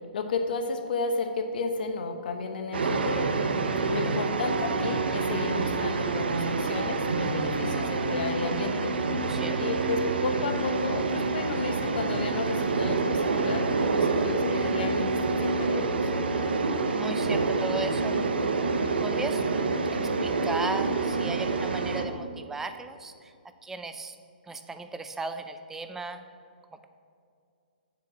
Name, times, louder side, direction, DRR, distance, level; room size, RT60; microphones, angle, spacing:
voice 1, 0.1-3.3 3.9-8.9 9.6-13.6 13.9-16.0, left 4 dB, 60° left, 6 dB, 1.0 m, -32 dB
sound 1, 2.7-22.1, right 3 dB, 80° right, 0.8 m, -27 dB
voice 2, 3.8-4.2 9.3-9.6 16.3-16.5 16.9-18.2 19.0-19.4 20.2-23.3 23.6-24.1 24.5-26.2, right 3 dB, 5° right, 9 dB, 0.4 m, -36 dB
7.4 x 4.8 x 7.1 m, 2.4 s
hypercardioid pair, 140°, 5 cm